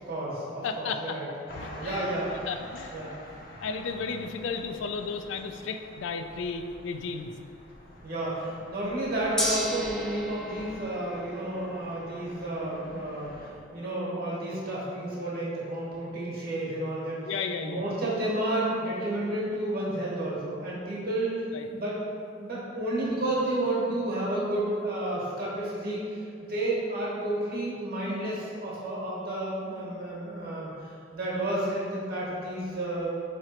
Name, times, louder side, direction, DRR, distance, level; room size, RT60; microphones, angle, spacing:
voice 1, 0.1-1.3 1.7-2.3 2.9-3.1 8.0-13.3 13.7-17.2 17.6-21.3 21.7-22.0 22.4-26.2 26.5-30.7 31.1-33.1, right 1 dB, 55° right, -6 dB, 1.3 m, -31 dB
voice 2, 0.6-1.2 1.6-3.3 3.6-7.3 17.2-17.9 21.5-21.7, left 5 dB, 85° left, 7 dB, 0.3 m, -34 dB
sound 1, 1.5-13.5, left 1 dB, 50° left, 0.7 m, -47 dB
Gong, 9.4-19.6, left 1 dB, 5° left, 0.5 m, -39 dB
3.8 x 3.2 x 4.3 m, 2.4 s
head